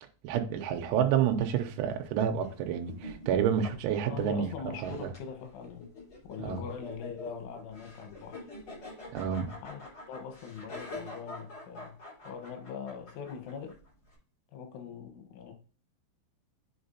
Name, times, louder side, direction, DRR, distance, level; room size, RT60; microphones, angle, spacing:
voice 1, 0.2-4.5 4.8-5.1 6.4-6.6 9.1-9.5, right 8 dB, 85° right, 3.2 m, -29 dB
sound 1, 0.5-14.1, left 2 dB, 25° left, 4.5 m, -47 dB
voice 2, 4.1-5.9 6.3-8.5 9.6-12.0 12.2-13.8 14.5-15.5, left 6 dB, 85° left, 3.8 m, -42 dB
8.8 x 6.0 x 2.8 m
omnidirectional pair, 5.5 m